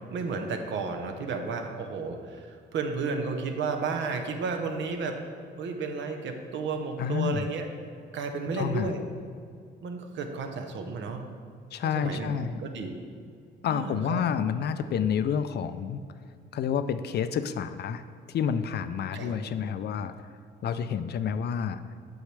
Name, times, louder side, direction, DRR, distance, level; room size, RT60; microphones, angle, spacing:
voice 1, 0.1-5.2 5.6-7.7 8.1-9.0 9.8-11.3 11.8-13.0 13.6-14.2 19.1-19.3, right 4 dB, 70° right, 5 dB, 0.8 m, -32 dB
voice 2, 7.0-7.5 8.5-8.9 11.7-12.6 13.6-16.0 16.5-18.0 18.3-20.1 20.6-21.8, left 7 dB, 55° left, 11 dB, 0.4 m, -29 dB
8.2 x 6.2 x 3.3 m, 2.2 s
cardioid pair, 90°, 20 cm